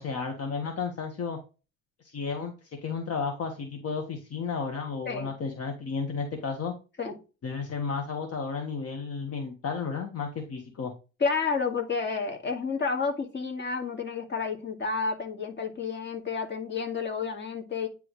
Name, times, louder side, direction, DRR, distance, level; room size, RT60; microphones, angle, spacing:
voice 1, 0.0-1.4 2.0-6.7 7.4-10.9, left 5 dB, 55° left, 4 dB, 1.4 m, -33 dB
voice 2, 11.2-17.9, left 5 dB, 35° left, 3 dB, 2.1 m, -30 dB
9.7 x 3.4 x 3.2 m, 0.31 s
cardioid pair, 90°, 30 cm